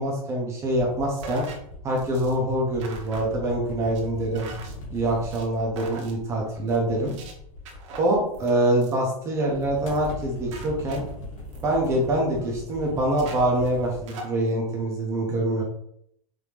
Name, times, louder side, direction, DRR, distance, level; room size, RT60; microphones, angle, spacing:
voice 1, 0.0-1.5 1.8-4.5 4.9-7.1 8.0-11.0 11.6-15.6, right 1 dB, 15° right, -1 dB, 0.7 m, -25 dB
sound 1, 0.6-8.8 9.4-14.0, left 2 dB, 55° left, 1.7 m, -40 dB
sound 2, 1.2-1.6 2.0-2.3 2.8-3.3 3.6-4.0 4.3-4.7 5.1-5.5 5.8-6.1 6.4-6.8 7.1-7.3 7.7-8.5 8.8-9.1 9.4-9.6 9.9-10.2 10.4-12.5 12.7-12.9 13.2-14.3, right 3 dB, 55° right, 1.1 m, -42 dB
5.1 x 2.7 x 3.2 m, 0.70 s
supercardioid pair, 175°, 19 cm